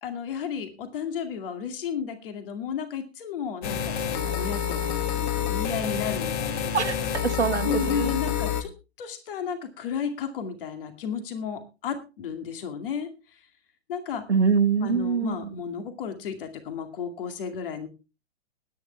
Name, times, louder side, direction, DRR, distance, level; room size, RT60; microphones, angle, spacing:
voice 1, 0.0-6.7 7.6-8.7 9.0-13.4 13.9-14.2 14.8-17.9, left 7 dB, 55° left, 2.4 m, -33 dB
sound 1, 3.6-8.6, left 8 dB, 35° left, 2.1 m, -28 dB
voice 2, 6.7-8.1 14.3-15.5, right 5 dB, 85° right, 1.2 m, -24 dB
19.5 x 9.9 x 3.3 m
figure-of-eight pair, 110°, 33 cm